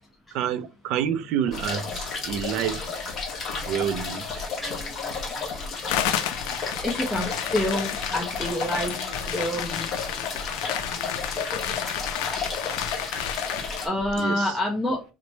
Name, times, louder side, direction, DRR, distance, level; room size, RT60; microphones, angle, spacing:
voice 1, 0.3-3.0 3.7-4.5 14.2-14.5, right 9 dB, 60° right, 0.4 m, -28 dB
sound 1, 1.5-14.3, left 2 dB, 70° left, 1.0 m, -41 dB
sound 2, 1.5-13.9, left 4 dB, 35° left, 1.0 m, -32 dB
sound 3, 5.9-13.9, left 11 dB, 90° left, 0.3 m, -32 dB
voice 2, 6.7-10.2 13.8-15.0, left 1 dB, ahead, 0.6 m, -28 dB
3.1 x 2.1 x 3.9 m
cardioid pair, 145°, 0 cm